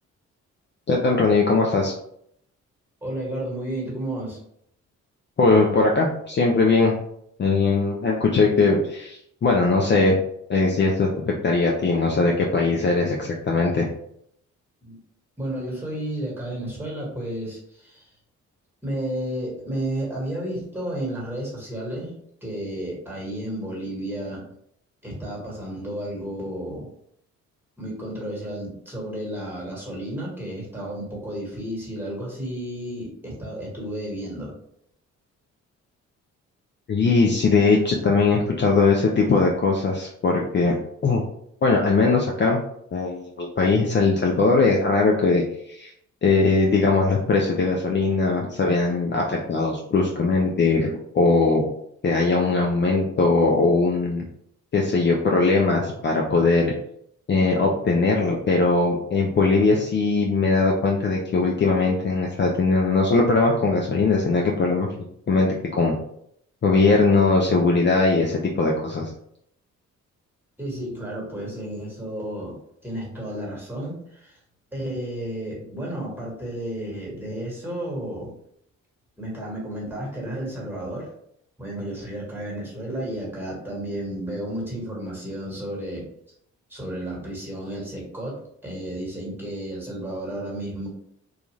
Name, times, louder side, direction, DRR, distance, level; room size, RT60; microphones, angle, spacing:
voice 1, 0.9-1.9 5.4-6.9 7.4-10.2 10.5-13.9 36.9-40.7 41.0-41.2 41.6-42.6 42.9-45.4 45.7-45.9 46.2-51.6 52.0-54.2 54.7-56.7 57.3-64.9 65.3-66.0 66.6-69.1, left 3 dB, 35° left, -1 dB, 0.5 m, -20 dB
voice 2, 3.0-4.4 14.8-14.9 15.4-18.1 18.8-22.1 22.4-24.4 25.0-26.9 27.8-34.5 70.6-72.6 72.8-74.4 74.7-78.4 79.2-81.1 81.6-86.0 86.7-88.4 88.6-90.9, right 1 dB, 5° right, -4 dB, 1.5 m, -32 dB
2.4 x 2.4 x 3.1 m, 0.70 s
cardioid pair, 70°, 30 cm